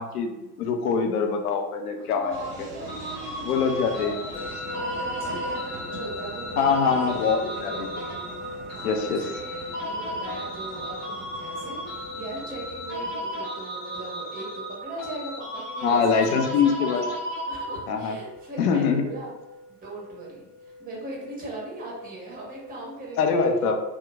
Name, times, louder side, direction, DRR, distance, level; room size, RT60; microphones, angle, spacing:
voice 1, 0.0-2.7 3.4-4.2 6.6-7.9 8.8-9.2 15.8-17.0 17.9-18.2 18.6-19.0 23.2-23.8, left 5 dB, 70° left, 5 dB, 0.5 m, -24 dB
voice 2, 2.0-4.3 4.7-7.0 7.2-8.2 8.7-16.9 17.5-19.3 19.7-23.4, right 2 dB, 20° right, -4 dB, 1.0 m, -39 dB
sound 1, 2.3-13.1, right 2 dB, 50° right, 0.7 m, -43 dB
sound 2, 2.9-18.1, equal, 35° left, 1.3 m, -35 dB
Musical instrument, 4.3-23.2, left 2 dB, 15° left, 0.6 m, -42 dB
2.8 x 2.2 x 2.3 m, 1.0 s
figure-of-eight pair, 65°, 48 cm